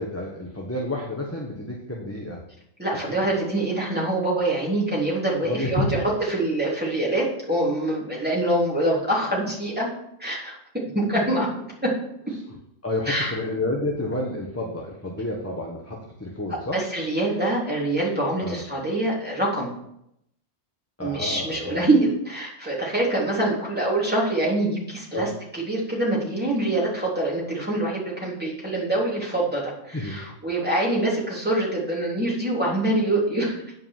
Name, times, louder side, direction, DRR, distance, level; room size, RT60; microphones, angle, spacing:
voice 1, 0.0-2.4 3.2-3.4 5.4-6.0 12.8-16.8 18.4-18.6 21.0-21.8 25.1-25.3 29.9-30.2, left 1 dB, 10° left, -2 dB, 1.3 m, -30 dB
voice 2, 2.8-9.9 10.2-10.6 10.9-11.5 11.8-11.9 13.1-13.4 16.7-19.7 21.0-33.6, right 1 dB, 5° right, -5 dB, 3.6 m, -25 dB
9.7 x 5.4 x 7.4 m, 0.78 s
omnidirectional pair, 1.3 m